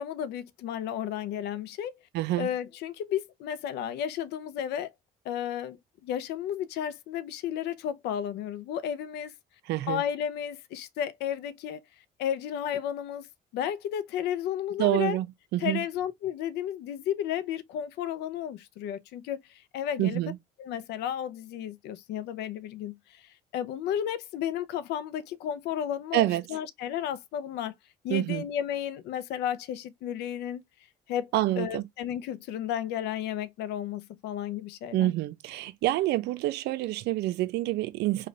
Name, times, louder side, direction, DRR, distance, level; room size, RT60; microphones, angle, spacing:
voice 1, 0.0-1.9 2.4-4.9 5.2-5.8 6.0-9.3 9.9-11.8 12.2-13.3 13.5-15.2 15.6-20.2 20.6-27.7 28.0-30.6 31.1-31.3 31.6-35.1, left 10 dB, 80° left, 0.6 m, -33 dB
voice 2, 2.1-2.5 9.7-10.0 14.8-15.3 15.5-15.8 20.0-20.4 26.1-26.5 28.1-28.4 31.3-31.8 34.9-38.3, right 15 dB, 80° right, 0.6 m, -27 dB
3.2 x 2.3 x 3.8 m
cardioid pair, 110°, 17 cm